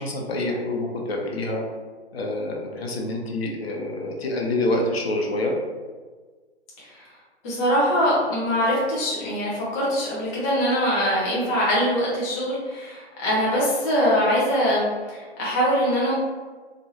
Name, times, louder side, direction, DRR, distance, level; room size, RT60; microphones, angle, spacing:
voice 1, 0.0-1.6 2.1-5.5, left 2 dB, 65° left, 0 dB, 0.8 m, -27 dB
voice 2, 7.4-16.2, equal, 15° left, -7 dB, 0.5 m, -23 dB
3.0 x 2.5 x 2.7 m, 1.4 s
hypercardioid pair, 145°, 34 cm